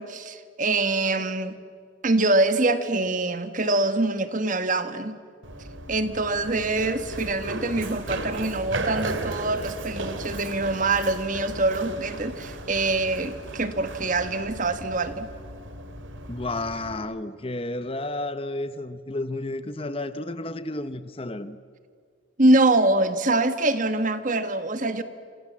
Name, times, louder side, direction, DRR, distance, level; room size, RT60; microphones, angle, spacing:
voice 1, 0.0-1.5 2.0-5.2 5.9-15.3 22.4-25.0, right 2 dB, 40° right, 1.5 m, -24 dB
Run, 5.4-17.0, right 2 dB, 75° right, 2.8 m, -36 dB
voice 2, 16.3-21.6, left 2 dB, 30° left, 0.9 m, -32 dB
28.5 x 27.0 x 7.5 m
head